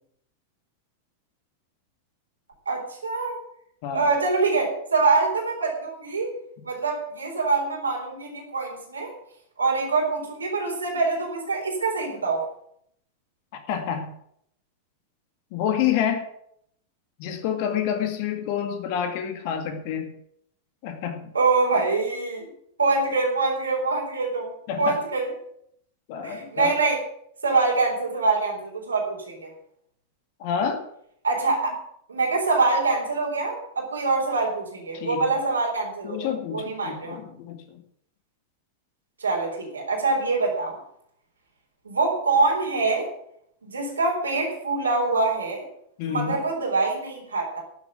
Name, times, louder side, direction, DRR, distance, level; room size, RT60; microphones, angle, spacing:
voice 1, 2.7-3.4 3.9-6.3 6.6-9.1 9.6-12.4 21.3-22.5 22.8-24.5 24.8-25.3 26.2-27.0 27.4-29.5 31.2-31.7 32.1-37.2 39.2-40.8 41.8-43.1 43.6-45.7 46.0-47.6, right 3 dB, 75° right, -1 dB, 4.0 m, -24 dB
voice 2, 13.5-14.1 15.5-16.3 17.2-20.1 20.8-21.2 24.7-25.0 26.1-26.7 30.4-30.8 34.9-35.3 36.0-37.8 46.0-46.4, left 8 dB, 45° left, 7 dB, 2.0 m, -28 dB
12.0 x 7.5 x 8.9 m, 0.70 s
figure-of-eight pair, 90°, 0 cm